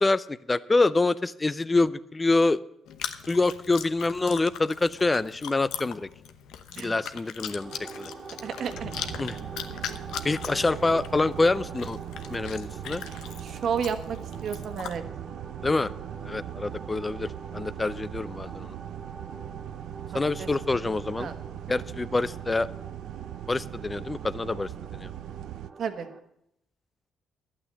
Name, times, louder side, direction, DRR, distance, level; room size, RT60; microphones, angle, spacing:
voice 1, 0.0-2.6 3.3-6.1 6.8-7.7 8.0-8.1 9.2-9.4 10.2-12.0 12.3-13.0 15.6-15.9 16.2-18.7 20.1-21.3 21.7-22.7 23.5-25.1, left 3 dB, 20° left, 16 dB, 0.5 m, -26 dB
Chewing mastication, 2.9-15.0, left 9 dB, 85° left, 0.9 m, -40 dB
sound 1, 7.6-26.2, right 4 dB, 40° right, 1.6 m, -45 dB
voice 2, 8.4-8.9 13.4-14.2 14.4-15.0 20.4-20.5 21.2-21.4 25.8-26.1, right 7 dB, 65° right, 8 dB, 1.4 m, -31 dB
sound 2, 8.7-25.7, right 12 dB, 85° right, 0.4 m, -40 dB
12.0 x 8.7 x 7.6 m, 0.78 s
cardioid pair, 90°, 0 cm